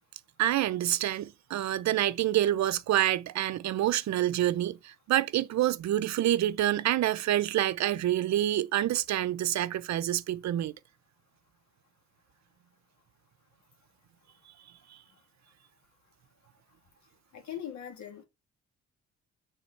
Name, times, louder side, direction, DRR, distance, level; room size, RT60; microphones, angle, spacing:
voice 1, 0.4-10.7, right 13 dB, 65° right, 0.6 m, -27 dB
voice 2, 17.3-18.3, left 10 dB, 70° left, 2.2 m, -40 dB
6.8 x 3.8 x 4.5 m
cardioid pair, 90°, 30 cm